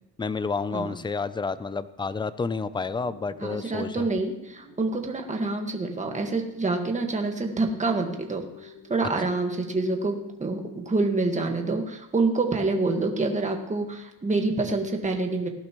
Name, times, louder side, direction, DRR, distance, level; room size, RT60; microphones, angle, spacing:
voice 1, 0.2-4.0, left 4 dB, 15° left, 14 dB, 0.4 m, -30 dB
sound 1, 2.9-11.8, left 1 dB, 70° left, 4.9 m, -49 dB
voice 2, 3.4-15.5, right 3 dB, 20° right, 3 dB, 1.6 m, -27 dB
18.5 x 11.5 x 3.1 m, 0.87 s
cardioid pair, 135°, 38 cm